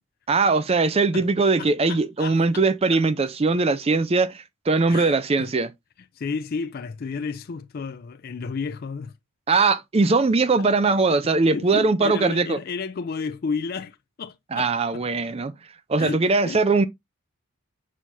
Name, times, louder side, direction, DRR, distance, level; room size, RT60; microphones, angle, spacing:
voice 1, 0.3-5.7 9.5-12.6 14.5-15.5 15.9-16.8, right 3 dB, 25° right, 0.4 m, -21 dB
voice 2, 1.6-2.6 2.9-3.0 4.9-5.5 6.1-9.1 11.5-15.0 16.0-16.6, left 5 dB, 45° left, 0.3 m, -32 dB
6.3 x 5.8 x 2.6 m
head